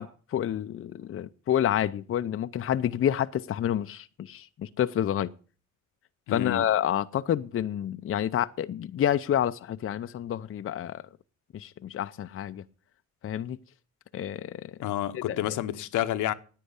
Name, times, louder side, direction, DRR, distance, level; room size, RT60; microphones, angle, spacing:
voice 1, 0.0-5.3 6.3-11.0 11.5-12.6 13.2-13.6 14.1-14.7 15.3-15.4, left 10 dB, 45° left, 0.6 m, -29 dB
voice 2, 6.3-6.7 14.8-16.3, left 13 dB, 80° left, 1.0 m, -29 dB
10.0 x 9.3 x 8.1 m
cardioid pair, 90°, 30 cm